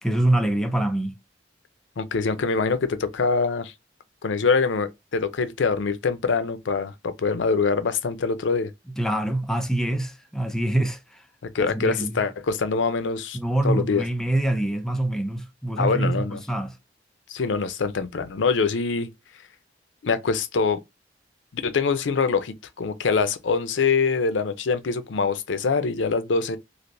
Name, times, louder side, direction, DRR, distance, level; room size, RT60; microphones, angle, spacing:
voice 1, 0.0-1.2 9.0-11.2 11.6-12.2 13.3-16.8, right 1 dB, 5° left, 0.4 m, -25 dB
voice 2, 2.0-3.7 4.2-8.7 11.4-13.4 13.6-14.0 15.8-16.4 17.3-19.1 20.0-20.8 21.5-26.6, left 4 dB, 85° left, 0.5 m, -24 dB
3.3 x 2.5 x 2.6 m
head